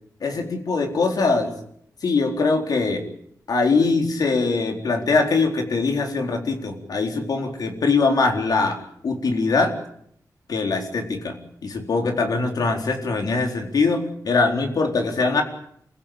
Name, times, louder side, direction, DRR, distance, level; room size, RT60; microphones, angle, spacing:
voice 1, 0.2-1.5 2.0-3.0 3.5-8.8 9.0-9.7 10.5-15.4, left 3 dB, 75° left, 4 dB, 4.2 m, -22 dB
27.5 x 16.0 x 8.8 m, 0.68 s
wide cardioid pair, 140°, 7 cm